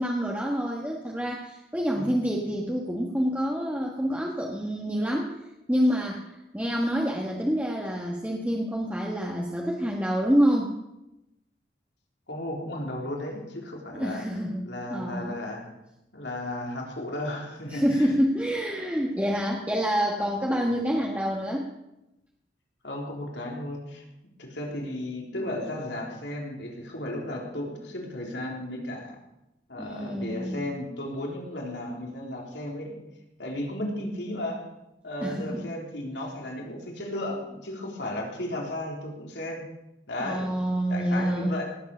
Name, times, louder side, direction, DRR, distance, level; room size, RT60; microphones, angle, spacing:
voice 1, 0.0-5.3 5.7-6.3 6.5-10.7 13.9-15.4 17.7-21.7 29.8-30.7 35.2-35.6 40.2-41.5, equal, 10° right, -2 dB, 1.4 m, -27 dB
voice 2, 12.3-14.2 14.6-15.7 16.1-18.1 22.8-24.0 24.4-29.2 29.7-33.0 33.4-34.7 35.0-39.6 40.1-40.5 40.9-41.6, left 1 dB, 80° left, -1 dB, 3.8 m, -34 dB
18.5 x 8.4 x 6.7 m, 0.91 s
head